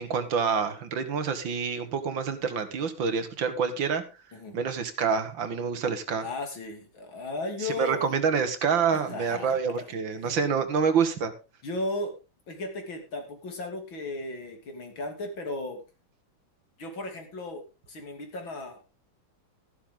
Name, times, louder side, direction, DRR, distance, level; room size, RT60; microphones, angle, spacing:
voice 1, 0.0-4.0 4.5-6.3 7.6-11.3, right 6 dB, 70° right, 10 dB, 2.2 m, -27 dB
voice 2, 4.3-4.6 6.2-8.1 8.9-9.6 10.2-10.4 11.6-12.2 12.5-15.8 16.8-18.8, left 2 dB, 75° left, 4 dB, 3.6 m, -35 dB
13.5 x 11.5 x 3.8 m, 0.29 s
omnidirectional pair, 2.2 m